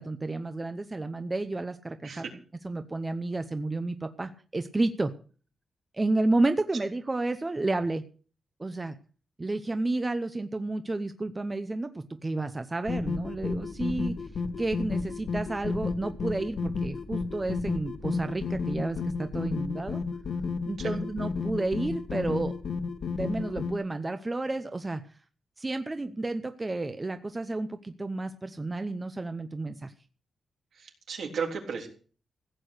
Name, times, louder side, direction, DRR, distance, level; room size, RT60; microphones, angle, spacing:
voice 1, 0.0-2.3 2.6-5.1 5.9-8.0 8.6-9.0 9.4-14.1 14.6-20.0 20.6-22.5 23.1-25.0 25.6-29.9, right 2 dB, 20° right, 9 dB, 0.8 m, -31 dB
voice 2, 2.0-2.4 20.8-20.9 30.7-31.9, right 6 dB, 70° right, 2 dB, 3.4 m, -34 dB
sound 1, 12.8-23.7, left 4 dB, 65° left, 1.7 m, -32 dB
15.5 x 8.4 x 6.6 m, 0.41 s
wide cardioid pair, 140°, 0 cm